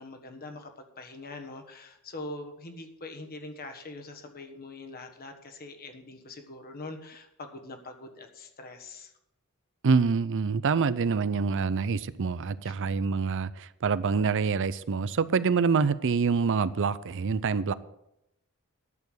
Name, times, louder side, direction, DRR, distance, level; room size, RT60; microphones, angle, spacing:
voice 1, 0.0-9.1 12.6-12.7, left 2 dB, 45° left, 5 dB, 1.5 m, -43 dB
voice 2, 9.8-17.7, right 5 dB, 60° right, 17 dB, 0.5 m, -26 dB
11.0 x 6.9 x 8.1 m, 0.84 s
head